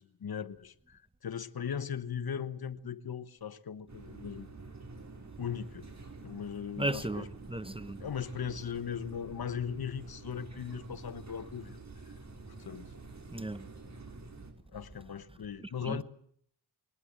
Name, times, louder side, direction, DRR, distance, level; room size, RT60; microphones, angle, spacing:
voice 1, 0.0-4.5 5.4-5.9 6.2-7.3 8.0-11.8 12.6-12.9 14.7-16.0, left 8 dB, 60° left, 1.2 m, -38 dB
sound 1, 3.9-14.5, right 3 dB, 40° right, 4.7 m, -48 dB
voice 2, 6.8-8.1 13.3-13.7 15.8-16.0, right 1 dB, 15° right, 1.0 m, -35 dB
21.5 x 19.0 x 8.7 m
wide cardioid pair, 85°, 41 cm